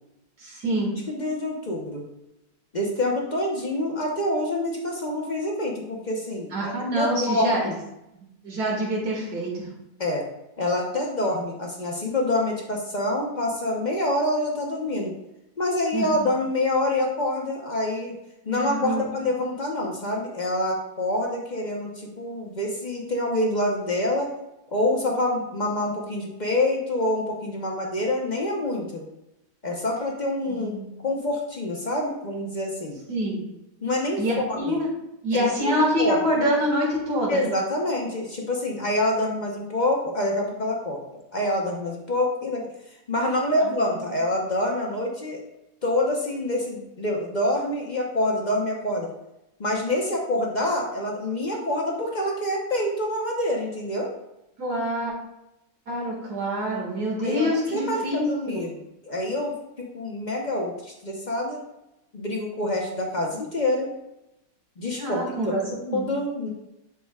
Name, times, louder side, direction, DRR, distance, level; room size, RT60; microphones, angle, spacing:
voice 1, 0.4-0.9 6.5-7.7 8.4-9.7 15.9-16.3 18.5-19.0 30.5-30.9 33.1-33.4 34.2-34.9 35.2-37.4 54.6-55.1 55.9-58.6 65.0-66.0, equal, 50° right, -3 dB, 2.5 m, -26 dB
voice 2, 1.1-2.1 2.7-7.8 10.0-10.2 10.6-15.1 15.6-18.2 18.4-24.3 24.7-29.0 29.6-30.8 31.0-33.0 33.8-34.2 34.5-34.8 35.3-36.2 37.3-41.0 41.3-42.7 43.1-45.4 45.8-49.1 49.6-54.1 57.2-58.8 59.0-61.6 62.1-63.9 64.8-65.2 65.9-66.5, left 1 dB, 40° left, -1 dB, 0.6 m, -26 dB
10.5 x 4.7 x 2.4 m, 0.90 s
omnidirectional pair, 2.1 m